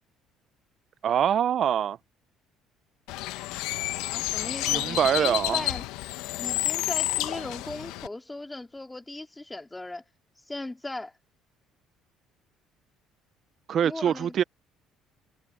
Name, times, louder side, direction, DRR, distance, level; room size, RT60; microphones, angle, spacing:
voice 1, 1.0-2.0 4.7-5.7 13.7-14.4, right 9 dB, 55° right, 0.5 m, -24 dB
Bird, 3.1-8.1, left 18 dB, 85° left, 1.0 m, -30 dB
voice 2, 4.0-5.8 6.4-10.0 10.5-11.1 13.8-14.3, left 2 dB, 15° left, 2.7 m, -38 dB
supercardioid pair, 90°, 0 cm